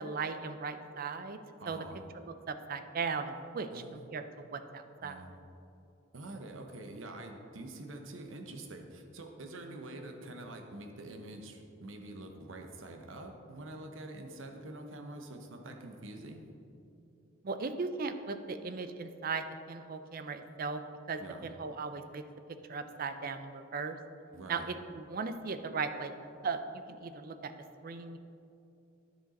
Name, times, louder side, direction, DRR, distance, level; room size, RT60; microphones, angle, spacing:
voice 1, 0.0-1.4 1.7-1.8 2.5-5.2 17.4-20.8 21.1-22.2 22.7-24.0 24.5-26.1 26.4-27.5 27.8-28.2, right 4 dB, 45° right, 9 dB, 0.5 m, -37 dB
voice 2, 1.6-2.1 3.7-3.9 5.0-5.4 6.1-16.5 21.2-21.5 24.3-24.7, right 2 dB, 70° right, 4 dB, 0.9 m, -46 dB
10.0 x 6.3 x 4.1 m, 2.7 s
head